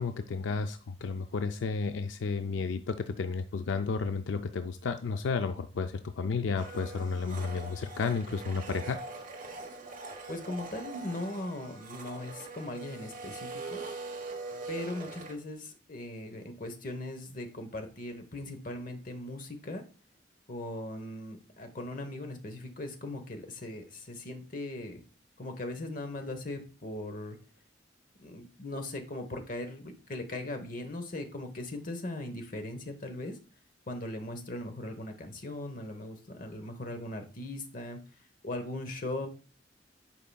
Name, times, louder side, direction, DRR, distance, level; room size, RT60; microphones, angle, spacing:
voice 1, 0.0-9.0, left 4 dB, 80° left, 8 dB, 0.4 m, -32 dB
Domestic sounds home sounds, 6.6-15.3, right 3 dB, 45° right, 1.2 m, -42 dB
voice 2, 10.3-13.8 14.7-19.8 20.5-25.0 25.4-27.4 28.2-33.4 33.9-38.0 38.4-39.3, left 1 dB, 45° left, 6 dB, 1.0 m, -39 dB
10.0 x 4.8 x 2.3 m, 0.38 s
head